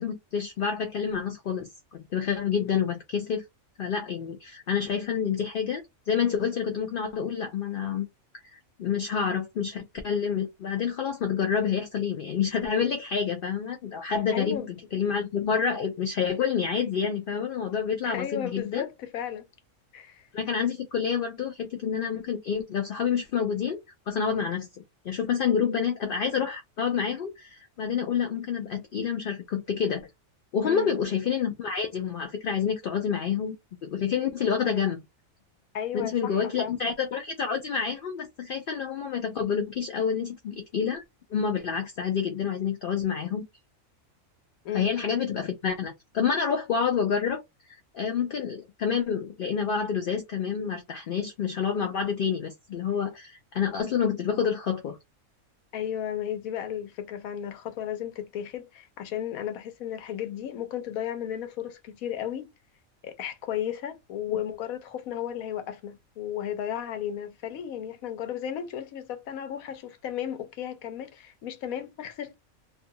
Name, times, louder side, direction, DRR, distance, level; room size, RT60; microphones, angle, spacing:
voice 1, 0.0-3.4 3.8-8.1 8.5-18.8 20.3-23.8 24.1-24.7 25.0-30.0 30.5-33.5 33.8-35.0 35.9-41.0 41.3-43.4 44.7-47.4 47.7-55.0 64.3-64.4, left 7 dB, 70° left, 0.5 m, -28 dB
voice 2, 14.3-14.7 18.0-19.5 19.9-20.3 30.6-31.0 35.7-36.7 44.6-45.0 55.7-62.5 63.0-72.3, left 10 dB, 85° left, 1.1 m, -34 dB
2.6 x 2.4 x 2.7 m
omnidirectional pair, 1.4 m